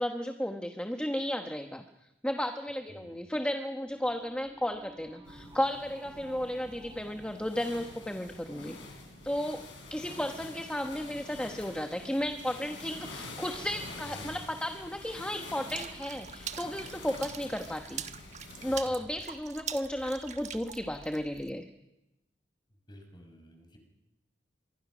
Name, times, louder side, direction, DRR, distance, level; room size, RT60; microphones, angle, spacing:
voice 1, 0.0-1.8 2.2-8.8 9.2-9.6 9.9-18.0 18.6-21.6, left 1 dB, 5° left, 5 dB, 1.1 m, -34 dB
voice 2, 2.9-3.2 10.0-10.4 14.0-14.4 18.9-19.1 22.9-23.8, equal, 25° left, 4 dB, 5.6 m, -51 dB
sound 1, 3.8-8.9, right 1 dB, 20° right, 7.8 m, -54 dB
sound 2, 5.3-18.8, left 3 dB, 85° left, 7.0 m, -47 dB
Water / Splash splatter, 15.7-21.5, right 7 dB, 40° right, 1.2 m, -43 dB
25.0 x 23.0 x 6.2 m, 0.90 s
head